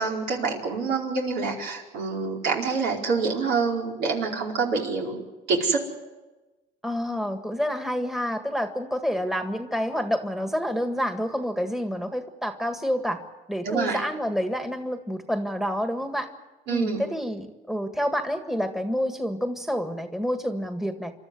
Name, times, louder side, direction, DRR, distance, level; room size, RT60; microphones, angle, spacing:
voice 1, 0.0-5.2 5.5-5.8 13.6-14.0 16.7-17.0, right 4 dB, 80° right, -1 dB, 4.7 m, -26 dB
voice 2, 6.8-13.2 13.5-16.3 16.7-21.1, equal, ahead, 6 dB, 1.7 m, -28 dB
28.5 x 13.0 x 9.7 m, 1.2 s
cardioid pair, 110°, 17 cm